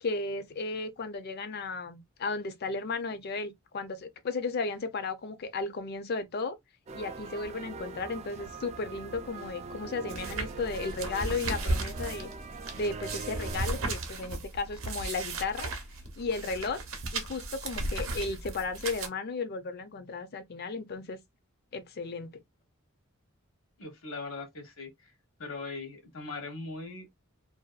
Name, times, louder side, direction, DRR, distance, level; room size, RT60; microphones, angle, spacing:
voice 1, 0.0-6.6 6.9-12.3 12.7-15.7 16.2-16.8 17.1-21.2 21.7-22.3, left 3 dB, 50° left, 0.5 m, -34 dB
sound 1, 6.9-13.9, right 4 dB, 30° right, 0.3 m, -42 dB
sound 2, 10.1-19.1, right 2 dB, 65° right, 0.7 m, -35 dB
voice 2, 23.8-25.1 25.4-27.1, left 3 dB, 65° left, 0.9 m, -40 dB
2.5 x 2.2 x 2.3 m
head